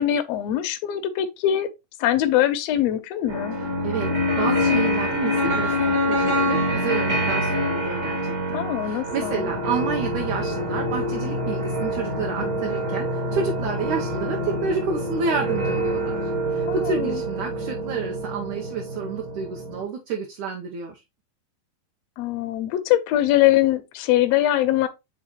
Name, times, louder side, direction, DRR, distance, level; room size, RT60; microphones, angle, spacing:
voice 1, 0.0-1.7 2.0-3.5 8.5-9.5 16.7-17.2 22.2-24.9, left 12 dB, 80° left, 1.5 m, -22 dB
sound 1, 3.3-19.8, equal, 45° right, 1.3 m, -26 dB
voice 2, 4.4-16.2 16.5-21.0, right 5 dB, 70° right, 2.0 m, -30 dB
8.4 x 3.9 x 2.9 m
omnidirectional pair, 3.9 m